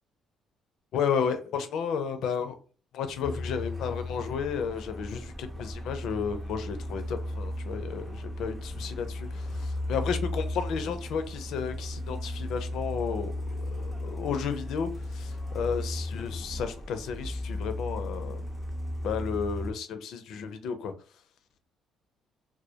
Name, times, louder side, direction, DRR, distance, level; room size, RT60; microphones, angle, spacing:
voice 1, 0.9-2.6 2.9-18.4 19.0-20.9, left 6 dB, 75° left, 0.4 m, -33 dB
Truck, 3.2-19.7, left 1 dB, 10° right, 0.5 m, -35 dB
2.1 x 2.1 x 2.8 m
cardioid pair, 80°, 0 cm